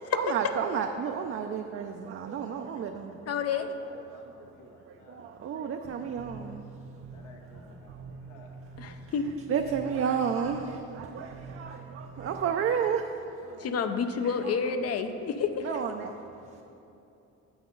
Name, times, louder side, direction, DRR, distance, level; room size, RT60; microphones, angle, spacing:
voice 1, 0.1-7.0 7.8-8.2 9.2-13.7 14.2-14.3 15.6-16.1 16.4-16.6, right 7 dB, 45° right, 5 dB, 0.4 m, -33 dB
voice 2, 2.4-3.2 3.8-5.7 6.1-6.4 7.1-8.8 9.2-9.3 11.5-11.8 13.5-14.0, left 3 dB, 80° left, 1 dB, 1.1 m, -56 dB
voice 3, 3.3-3.7 8.8-9.3 13.6-15.8, left 6 dB, 55° left, 8 dB, 0.5 m, -29 dB
sound 1, 5.8-12.7, right 4 dB, 65° right, 1.0 m, -46 dB
8.1 x 6.1 x 3.7 m, 2.9 s
cardioid pair, 90°, 30 cm